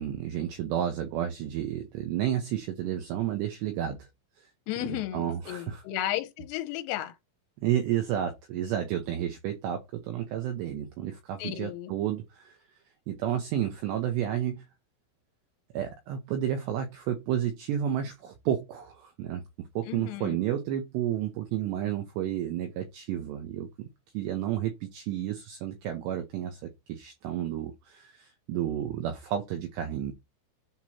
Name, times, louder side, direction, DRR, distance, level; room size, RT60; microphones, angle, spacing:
voice 1, 0.0-4.1 4.9-5.8 7.6-12.6 13.1-14.7 15.7-19.4 19.8-23.9 24.1-30.1, right 10 dB, 85° right, 2.4 m, -31 dB
voice 2, 4.7-7.2 11.4-11.9 19.9-20.4, left 14 dB, 90° left, 3.3 m, -34 dB
7.7 x 2.9 x 4.3 m
omnidirectional pair, 5.9 m